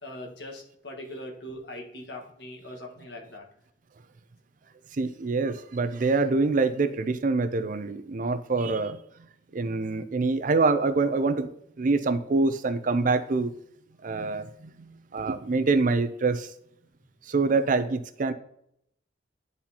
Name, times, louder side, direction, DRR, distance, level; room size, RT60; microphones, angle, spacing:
voice 1, 0.0-3.5, left 1 dB, 65° left, 1 dB, 1.5 m, -41 dB
voice 2, 4.9-9.0 9.5-11.5 11.8-13.5 14.0-16.5 17.3-18.3, right 3 dB, 45° right, 12 dB, 0.4 m, -25 dB
10.0 x 4.1 x 2.9 m, 0.72 s
head